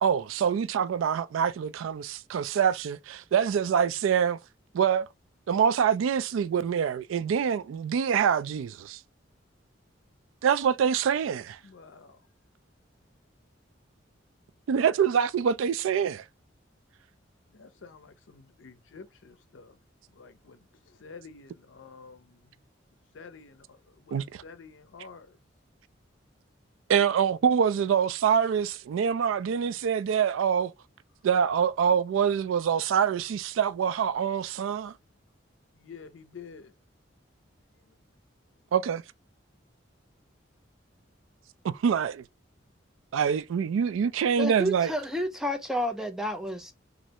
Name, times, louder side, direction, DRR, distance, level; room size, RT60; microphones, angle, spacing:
voice 1, 0.0-4.4 4.7-5.1 5.5-9.0 10.4-11.6 14.7-16.2 24.1-24.4 26.9-30.7 31.2-34.9 38.7-39.0 41.6-42.2 43.1-44.9, right 7 dB, 90° right, 0.3 m, -25 dB
voice 2, 11.6-12.2 17.6-19.7 20.2-20.6 21.0-22.4 23.1-23.6 24.1-25.3 35.8-36.7, left 5 dB, 75° left, 0.5 m, -48 dB
voice 3, 44.4-46.7, equal, ahead, 0.4 m, -30 dB
3.1 x 2.5 x 2.8 m
head